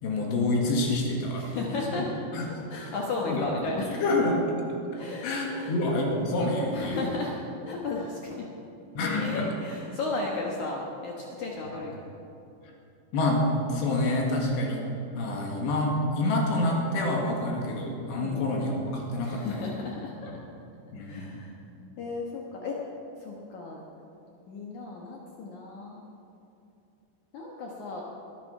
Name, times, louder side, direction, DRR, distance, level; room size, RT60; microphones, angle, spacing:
voice 1, 0.0-1.5 1.9-2.1 2.3-2.4 2.7-2.9 3.3-3.5 4.0-4.4 5.2-7.0 9.0-9.4 13.1-14.8 15.1-19.6 20.9-21.3, left 2 dB, 65° left, 0 dB, 3.9 m, -27 dB
voice 2, 1.4-2.1 2.4-4.0 4.9-5.8 6.7-8.5 9.0-12.0 18.2-18.5 19.2-20.4 21.0-21.5 22.0-22.8 23.2-23.8 24.5-26.0 27.3-28.0, left 3 dB, 90° left, -2 dB, 1.6 m, -34 dB
21.5 x 10.5 x 5.5 m, 2.8 s
omnidirectional pair, 5.5 m